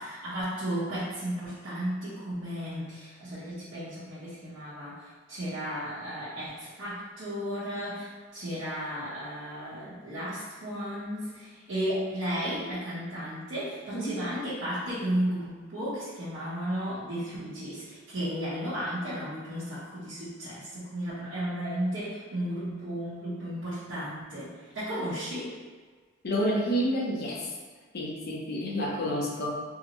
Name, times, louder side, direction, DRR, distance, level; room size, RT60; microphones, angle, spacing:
voice 1, 0.0-25.5, equal, 65° right, -13 dB, 0.9 m, -34 dB
voice 2, 26.2-27.5 27.9-29.5, equal, 55° left, -3 dB, 0.6 m, -29 dB
3.7 x 2.0 x 2.9 m, 1.4 s
head